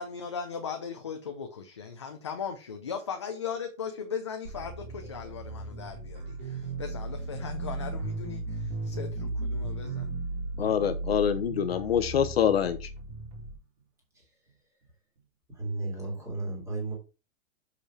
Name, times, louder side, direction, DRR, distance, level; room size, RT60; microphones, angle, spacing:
voice 1, 0.0-10.1, left 6 dB, 25° left, 0.5 m, -38 dB
sound 1, 4.4-13.5, right 2 dB, 35° right, 2.7 m, -36 dB
voice 2, 10.6-12.9, left 8 dB, 50° left, 0.9 m, -25 dB
voice 3, 15.5-16.9, right 2 dB, 10° right, 2.6 m, -34 dB
6.7 x 5.3 x 5.6 m
hypercardioid pair, 175°, 39 cm